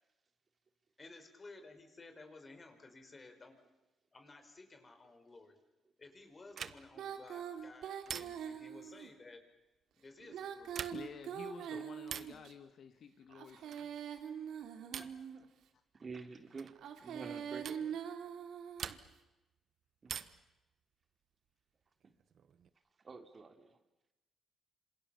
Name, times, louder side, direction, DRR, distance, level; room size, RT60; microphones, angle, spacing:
voice 1, 1.0-3.7 4.1-5.6 6.0-9.5 9.9-10.9 14.8-15.1, left 3 dB, 30° left, 7 dB, 5.1 m, -55 dB
sound 1, 6.5-7.1 8.1-8.7 10.6-11.2 12.0-12.4 13.7-14.0 14.9-15.3 16.6-16.8 17.6-17.9 18.8-19.3 20.1-20.5 22.0-22.7, right 8 dB, 60° right, 1.3 m, -45 dB
Female singing, 6.9-9.1 10.2-12.5 13.3-15.5 16.7-19.0, right 8 dB, 80° right, 2.8 m, -43 dB
voice 2, 10.9-13.9, left 6 dB, 60° left, 9 dB, 1.9 m, -51 dB
voice 3, 15.9-17.9 20.0-20.2 22.0-22.2 23.0-23.8, right 4 dB, 35° right, 6 dB, 3.2 m, -49 dB
27.0 x 27.0 x 7.1 m, 1.0 s
cardioid pair, 90°, 0 cm